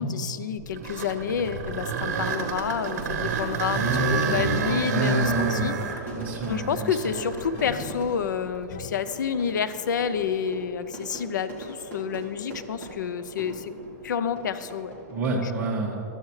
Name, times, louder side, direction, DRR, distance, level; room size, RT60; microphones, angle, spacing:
voice 1, 0.0-3.8 4.1-5.7 6.5-13.7 14.0-14.9 15.4-15.5, left 7 dB, 90° left, 13 dB, 0.6 m, -29 dB
sound 1, 0.6-8.6 9.2-9.3 10.1-10.2 13.7-14.1, right 5 dB, 55° right, 1.3 m, -30 dB
sound 2, 1.4-1.9 5.5-6.0 7.5-8.2 8.7-9.2, left 9 dB, 30° left, 0.3 m, -42 dB
Fire / Fireworks, 1.5-15.5, right 1 dB, 15° left, 1.8 m, -43 dB
voice 2, 3.7-4.5 4.8-5.8 6.1-6.9 15.1-16.0, right 2 dB, 15° right, -5 dB, 1.9 m, -28 dB
15.0 x 12.5 x 3.2 m, 2.7 s
hypercardioid pair, 170°, 10 cm